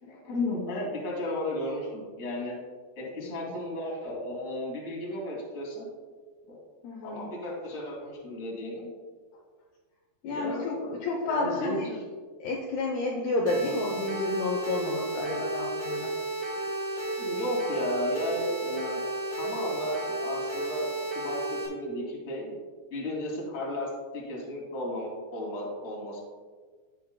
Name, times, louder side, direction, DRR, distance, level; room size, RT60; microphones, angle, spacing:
voice 1, 0.0-2.5 2.9-5.9 6.5-6.6 7.0-8.9 10.2-11.0 11.3-12.0 13.5-13.9 17.2-19.1 19.4-22.6 22.9-26.2, left 1 dB, 30° left, -4 dB, 1.3 m, -34 dB
voice 2, 6.8-7.2 10.2-11.9 12.4-16.1, left 2 dB, 90° left, 0 dB, 2.2 m, -30 dB
sound 1, 13.5-21.7, right 2 dB, 80° right, 4.3 m, -33 dB
16.5 x 5.5 x 2.2 m, 1.5 s
omnidirectional pair, 5.6 m